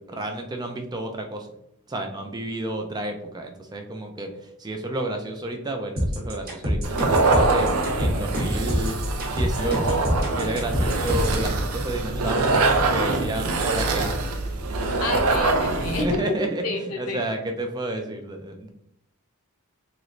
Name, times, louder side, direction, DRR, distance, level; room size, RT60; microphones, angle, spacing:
voice 1, 0.0-1.5 1.9-7.7 8.0-9.0 9.3-10.0 10.4-12.7 12.9-14.2 15.9-18.7, right 1 dB, 20° right, 4 dB, 0.3 m, -31 dB
sound 1, 6.0-11.4, equal, 40° right, 0.9 m, -25 dB
sound 2, 6.8-16.2, right 3 dB, 80° right, 0.5 m, -24 dB
voice 2, 15.0-17.2, left 2 dB, 75° left, 3 dB, 0.7 m, -29 dB
3.1 x 3.0 x 2.5 m, 0.78 s
head